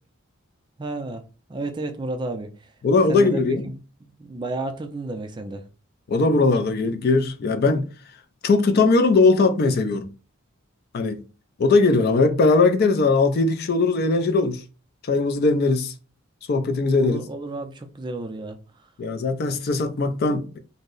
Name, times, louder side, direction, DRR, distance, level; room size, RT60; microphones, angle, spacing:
voice 1, 0.8-1.2 1.5-2.7 3.1-5.6 17.0-18.9, right 2 dB, 20° right, 0.3 m, -32 dB
voice 2, 2.8-3.7 6.1-7.9 8.4-10.1 10.9-11.2 11.6-14.6 15.0-15.9 16.5-17.2 19.0-20.6, left 3 dB, 50° left, 0.4 m, -20 dB
2.7 x 2.0 x 3.8 m
head